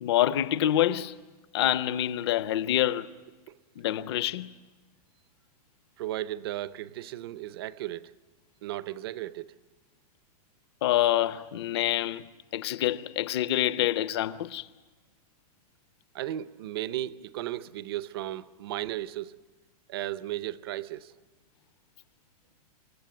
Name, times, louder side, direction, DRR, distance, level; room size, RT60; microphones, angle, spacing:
voice 1, 0.0-1.2 1.5-3.1 3.8-4.5 10.8-12.3 12.5-14.7, left 13 dB, 40° left, 0.8 m, -26 dB
voice 2, 6.0-8.1 8.6-9.5 16.1-19.4 19.9-21.1, right 14 dB, 40° right, 0.6 m, -35 dB
27.5 x 15.0 x 9.4 m
supercardioid pair, 175°, 20 cm